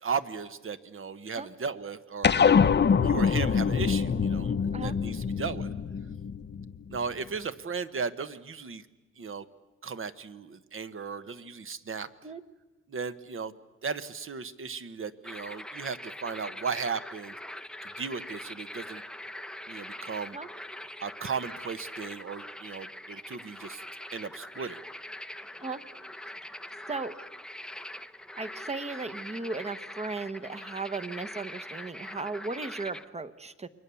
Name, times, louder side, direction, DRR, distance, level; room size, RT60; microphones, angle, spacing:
voice 1, 0.0-2.3 3.0-4.6 4.8-5.7 6.9-8.8 9.2-9.4 9.8-12.1 12.9-13.5 13.8-17.3 17.8-19.0 19.7-20.4 21.0-23.8 24.1-24.8, right 5 dB, 45° right, 12 dB, 1.1 m, -36 dB
sound 1, 2.2-7.0, left 6 dB, 35° left, 0.8 m, -24 dB
sound 2, 15.2-33.0, left 1 dB, 5° left, 0.7 m, -43 dB
voice 2, 28.4-33.7, right 3 dB, 20° right, 10 dB, 1.1 m, -36 dB
29.0 x 23.0 x 7.0 m, 1.1 s
wide cardioid pair, 115°, 29 cm